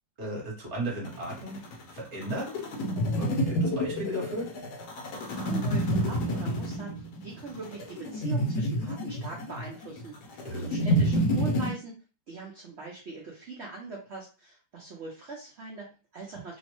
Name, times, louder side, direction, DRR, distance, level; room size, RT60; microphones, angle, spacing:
voice 1, 0.2-1.6 1.9-2.6 3.2-4.5 10.4-10.7, right 1 dB, 45° right, -2 dB, 1.2 m, -35 dB
sound 1, 1.0-11.7, equal, 70° left, 1.1 m, -29 dB
voice 2, 5.2-11.9 12.3-16.6, right 4 dB, 75° right, -2 dB, 0.6 m, -42 dB
3.0 x 2.0 x 2.9 m, 0.34 s
omnidirectional pair, 1.9 m